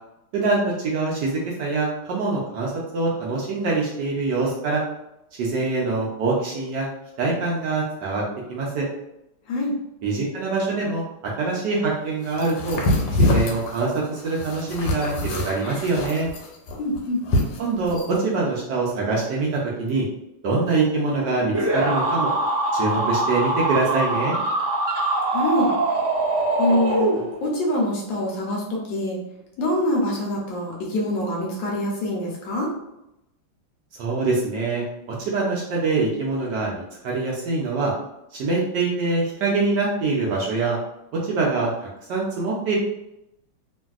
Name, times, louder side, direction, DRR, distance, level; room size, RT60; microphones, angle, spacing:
voice 1, 0.3-4.8 5.4-6.9 7.2-8.2 8.5-8.9 10.0-11.0 11.4-12.8 13.1-16.3 17.6-20.0 20.4-22.3 22.7-24.4 34.0-37.9 38.3-40.8 41.2-42.8, right 3 dB, 75° right, -3 dB, 1.0 m, -24 dB
sound 1, 12.3-18.2, left 1 dB, 85° left, 1.5 m, -25 dB
voice 2, 16.8-17.2 25.3-25.7 26.6-27.1 27.4-29.2 29.6-32.7, left 1 dB, 70° left, -2 dB, 1.2 m, -24 dB
sound 2, 21.5-27.6, right 2 dB, 35° right, 0.3 m, -23 dB
3.1 x 2.6 x 2.3 m, 0.87 s
omnidirectional pair, 2.4 m